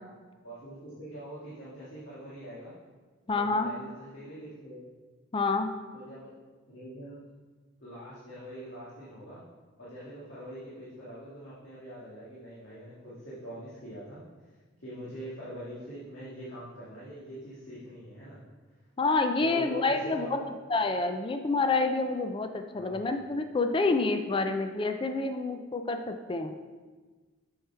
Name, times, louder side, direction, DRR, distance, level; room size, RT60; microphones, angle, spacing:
voice 1, 0.4-2.8 3.3-4.9 5.9-6.3 6.7-7.2 7.8-9.4 9.8-14.2 14.5-18.4 19.4-20.5 22.7-23.1, right 1 dB, 65° left, -9 dB, 2.0 m, -44 dB
voice 2, 3.3-3.7 5.3-5.7 19.0-20.4 20.7-26.5, left 3 dB, 25° left, 7 dB, 0.4 m, -28 dB
7.2 x 6.9 x 4.4 m, 1.4 s
head